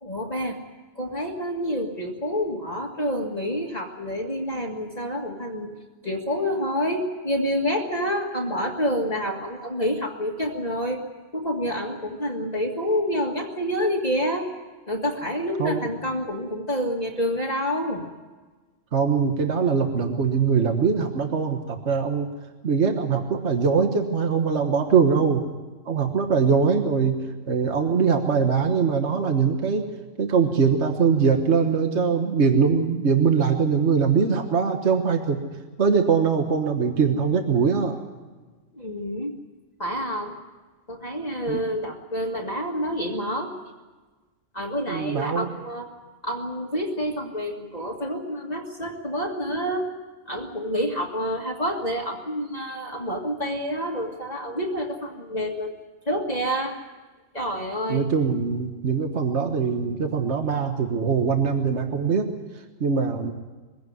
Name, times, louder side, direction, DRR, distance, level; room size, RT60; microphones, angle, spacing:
voice 1, 0.0-0.6 1.0-5.7 6.0-11.0 11.3-14.5 14.9-18.0 38.7-39.4 39.8-40.4 40.9-43.5 44.5-45.9 46.2-49.9 50.3-55.8 56.1-56.8 57.3-58.1, equal, 30° left, 0 dB, 1.8 m, -28 dB
voice 2, 18.9-22.3 22.6-25.4 25.9-27.2 27.5-29.8 30.2-35.4 35.8-38.0 41.5-41.6 44.9-45.5 57.9-62.3 62.8-63.3, right 5 dB, 60° right, 5 dB, 1.7 m, -22 dB
22.5 x 16.5 x 9.3 m, 1.3 s
omnidirectional pair, 1.3 m